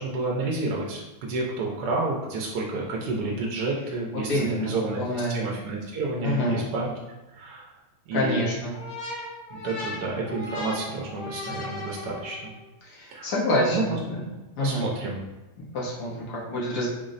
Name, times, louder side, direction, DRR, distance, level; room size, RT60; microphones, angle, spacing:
voice 1, 0.0-6.9 7.3-7.7 8.1-8.5 9.5-12.5 13.1-13.3 13.7-14.0 14.6-15.2, right 3 dB, 90° right, -2 dB, 1.2 m, -30 dB
voice 2, 4.1-5.4 6.2-6.6 8.1-8.7 12.8-14.2 14.6-14.9 15.6-16.9, left 1 dB, 90° left, -5 dB, 1.6 m, -27 dB
sound 1, 8.7-12.6, left 2 dB, 55° left, 1.3 m, -37 dB
4.0 x 2.0 x 3.8 m, 1.1 s
omnidirectional pair, 1.7 m